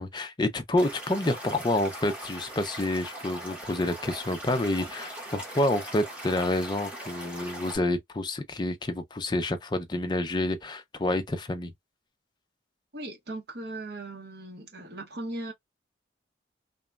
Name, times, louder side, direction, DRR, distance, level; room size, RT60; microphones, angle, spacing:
voice 1, 0.0-11.7, left 1 dB, 25° left, 0.4 m, -28 dB
Stream / Liquid, 0.8-7.8, right 1 dB, 5° right, 1.0 m, -40 dB
voice 2, 12.9-15.5, right 2 dB, 55° right, 0.9 m, -39 dB
2.9 x 2.2 x 2.3 m
head